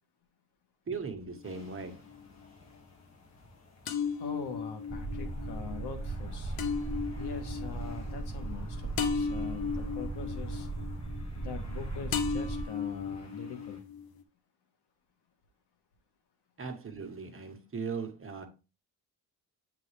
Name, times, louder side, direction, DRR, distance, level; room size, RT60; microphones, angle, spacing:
voice 1, 0.9-2.0 16.6-18.5, right 5 dB, 35° right, 1.3 m, -38 dB
sound 1, 1.3-2.2 3.9-11.8 12.1-14.2, left 5 dB, 65° left, 1.0 m, -36 dB
sound 2, 1.4-13.8, left 2 dB, 45° left, 2.0 m, -54 dB
voice 2, 4.2-6.6 7.2-10.7 11.3-13.8, left 6 dB, 90° left, 1.4 m, -43 dB
sound 3, 4.9-12.6, right 3 dB, 15° right, 0.5 m, -37 dB
8.5 x 3.8 x 3.3 m
cardioid pair, 105°, 39 cm